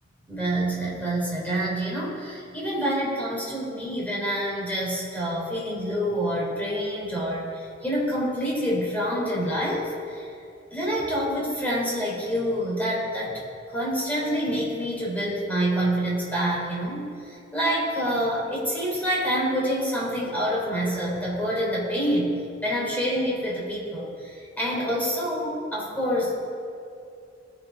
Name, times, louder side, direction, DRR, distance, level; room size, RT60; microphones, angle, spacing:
voice 1, 0.3-10.3 10.7-22.3 22.6-26.3, equal, 10° left, -5 dB, 3.9 m, -27 dB
20.0 x 7.0 x 5.3 m, 2.4 s
head